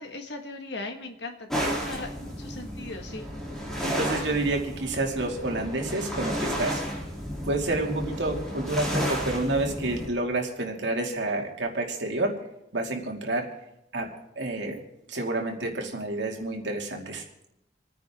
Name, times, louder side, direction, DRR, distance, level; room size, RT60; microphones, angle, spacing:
voice 1, 0.0-3.3, left 2 dB, 70° left, 5 dB, 1.7 m, -39 dB
sound 1, 1.5-10.1, equal, ahead, 3.1 m, -32 dB
voice 2, 3.8-6.8 7.5-12.3 12.7-13.5 13.9-14.1 14.4-14.8 15.1-17.2, right 2 dB, 80° right, 1 dB, 2.4 m, -29 dB
28.0 x 9.6 x 3.7 m, 0.87 s
head